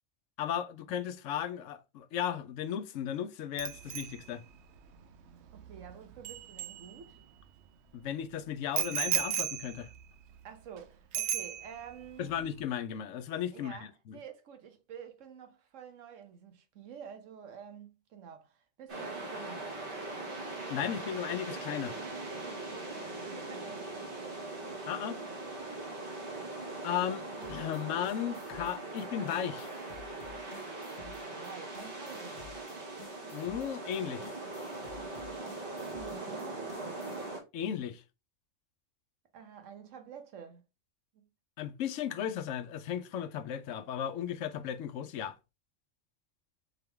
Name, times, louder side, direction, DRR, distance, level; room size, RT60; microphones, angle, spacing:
voice 1, 0.4-4.4 7.9-9.9 12.2-14.2 20.7-22.0 24.9-25.2 26.8-27.2 27.5-29.7 33.3-34.3 37.5-38.0 41.6-45.4, left 9 dB, 85° left, 0.9 m, -35 dB
Bicycle bell, 3.6-7.4 8.8-10.8 11.1-12.0 12.3-12.6, right 10 dB, 70° right, 0.8 m, -36 dB
voice 2, 5.5-7.2 10.4-12.3 13.5-20.0 23.1-24.6 27.4-27.5 31.0-32.7 35.9-36.7 39.3-40.6 41.1-41.2, right 7 dB, 85° right, 1.2 m, -49 dB
sound 1, 18.9-37.4, right 2 dB, 50° right, 1.5 m, -41 dB
sound 2, 27.4-37.3, left 7 dB, 65° left, 1.2 m, -54 dB
3.7 x 3.5 x 3.3 m
omnidirectional pair, 1.3 m